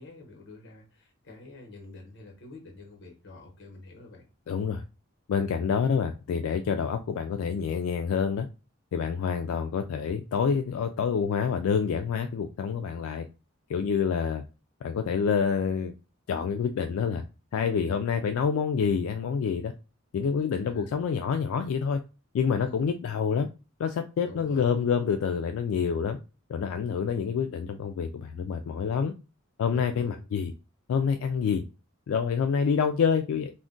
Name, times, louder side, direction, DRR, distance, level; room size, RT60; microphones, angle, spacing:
voice 1, 0.0-4.2 20.5-21.0 22.6-22.9 24.2-24.9 29.7-30.2, left 2 dB, 55° left, 1 dB, 1.0 m, -47 dB
voice 2, 4.5-4.8 5.3-8.5 8.9-13.3 13.7-14.4 14.8-15.9 16.3-17.2 17.5-19.7 20.1-22.0 22.3-23.5 23.8-26.2 26.5-29.1 29.6-30.5 30.9-31.6 32.1-33.5, left 6 dB, 85° left, 7 dB, 0.3 m, -27 dB
2.4 x 2.1 x 3.7 m, 0.30 s
head